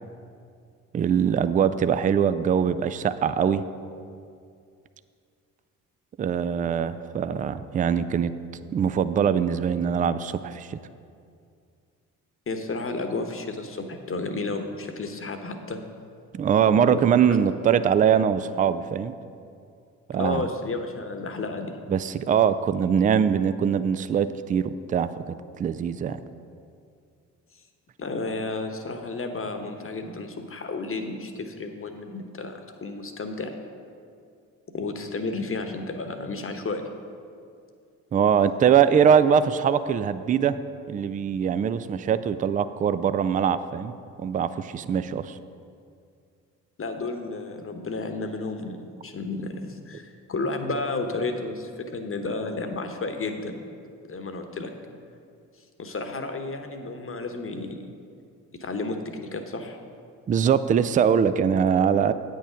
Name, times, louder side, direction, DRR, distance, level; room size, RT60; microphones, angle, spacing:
voice 1, 0.9-3.6 6.2-8.3 8.7-10.8 16.3-19.1 20.1-20.4 21.9-25.1 25.6-26.2 38.1-40.6 40.9-45.4 60.3-62.1, right 8 dB, 20° right, 13 dB, 0.3 m, -22 dB
voice 2, 12.5-15.8 16.7-17.4 20.2-21.8 28.0-33.5 34.7-36.8 46.8-48.8 49.0-53.6 54.1-54.7 55.8-57.9 58.5-59.8, left 3 dB, 30° left, 6 dB, 1.1 m, -32 dB
9.1 x 6.5 x 5.1 m, 2.4 s
hypercardioid pair, 45°, 41 cm